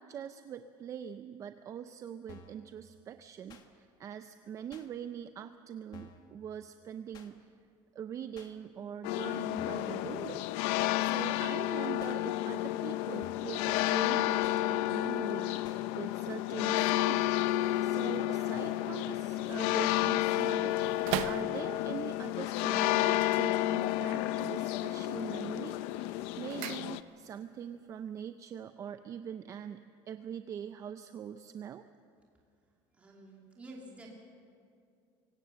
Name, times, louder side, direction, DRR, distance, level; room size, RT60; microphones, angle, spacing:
voice 1, 0.0-7.5 7.9-10.5 11.0-17.3 17.8-31.9, right 9 dB, 30° right, 9 dB, 0.5 m, -43 dB
sound 1, 2.3-2.6 3.5-3.7 4.7-4.9 5.9-6.3 7.1-7.3 8.3-8.5 9.6-9.9 10.8-11.0 12.0-12.2 13.2-13.6 14.4-14.6 15.6-15.8, left 5 dB, 40° left, 1.6 m, -53 dB
sound 2, 9.0-27.0, left 15 dB, 80° left, 0.7 m, -31 dB
sound 3, 17.0-22.0 23.1-24.2 24.5-25.0 25.4-27.4 27.7-27.8, right 14 dB, 75° right, 0.8 m, -43 dB
voice 2, 32.9-34.2, right 1 dB, 15° right, -2 dB, 2.7 m, -49 dB
24.5 x 17.5 x 7.0 m, 2.3 s
cardioid pair, 165°, 10 cm